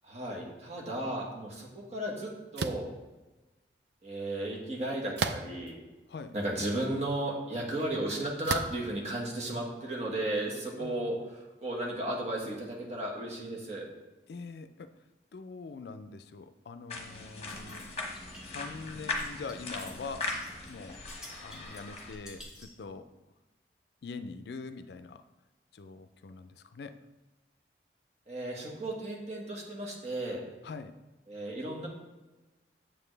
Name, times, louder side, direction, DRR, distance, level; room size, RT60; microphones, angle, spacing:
voice 1, 0.0-2.9 4.0-5.8 6.3-13.9 28.3-30.4 31.3-31.9, right 1 dB, 40° right, -3 dB, 1.5 m, -34 dB
sound 1, 2.6-2.9 5.2-5.7 6.4-6.5 8.4-8.9, right 5 dB, 75° right, 0.4 m, -32 dB
voice 2, 10.8-11.2 14.3-15.0 15.3-17.8 18.4-21.0 21.4-23.1 24.0-25.2 25.7-27.0 30.6-30.9, left 4 dB, 70° left, 11 dB, 0.4 m, -43 dB
sound 2, 16.9-22.1, left 3 dB, 35° left, 1.1 m, -39 dB
sound 3, 17.5-22.8, equal, 5° right, 0.8 m, -51 dB
7.6 x 7.1 x 3.3 m, 1.1 s
head